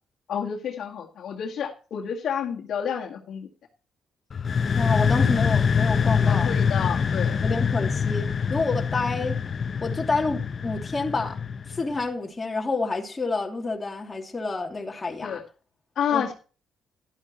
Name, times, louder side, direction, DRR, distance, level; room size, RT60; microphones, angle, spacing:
voice 1, 0.3-3.5 6.2-7.4 15.2-15.4 16.0-16.3, left 8 dB, 70° left, 1.8 m, -29 dB
sound 1, 4.3-12.0, left 6 dB, 45° left, 0.7 m, -24 dB
voice 2, 4.8-6.5 7.4-9.4 9.8-11.4 11.7-15.4 16.1-16.2, left 3 dB, 25° left, 2.7 m, -28 dB
12.0 x 12.0 x 3.0 m
cardioid pair, 90°, 0 cm